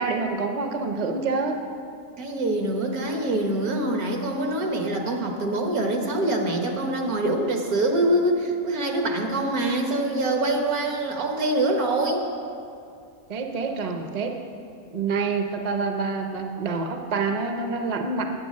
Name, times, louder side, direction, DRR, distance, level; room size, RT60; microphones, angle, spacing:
voice 1, 0.0-1.6 13.3-14.4 14.9-18.2, right 4 dB, 40° right, 4 dB, 0.6 m, -27 dB
voice 2, 2.2-12.3, right 1 dB, 75° right, 2 dB, 1.6 m, -24 dB
9.0 x 7.9 x 6.3 m, 2.4 s
omnidirectional pair, 1.6 m